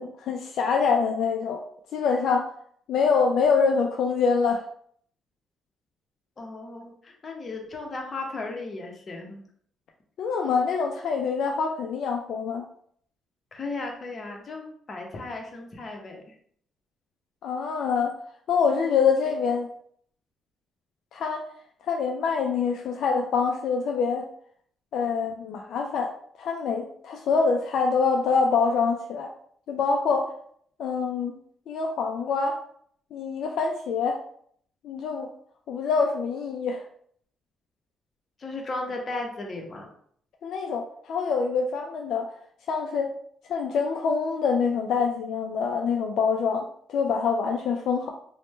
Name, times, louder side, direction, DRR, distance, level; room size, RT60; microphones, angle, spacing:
voice 1, 0.0-1.6 1.9-2.5 2.9-4.6 10.2-12.6 17.4-18.1 18.5-19.7 21.1-21.5 21.8-24.2 24.9-26.1 26.4-29.3 29.7-30.3 30.8-31.3 31.7-32.6 33.1-34.2 34.8-35.3 35.7-36.8 40.4-42.3 42.7-43.1 43.5-48.1, left 5 dB, 75° left, 2 dB, 0.3 m, -25 dB
voice 2, 6.4-9.4 13.5-16.2 38.4-39.9, left 2 dB, 40° left, 1 dB, 0.7 m, -35 dB
3.0 x 2.1 x 3.1 m, 0.63 s
cardioid pair, 90°, 0 cm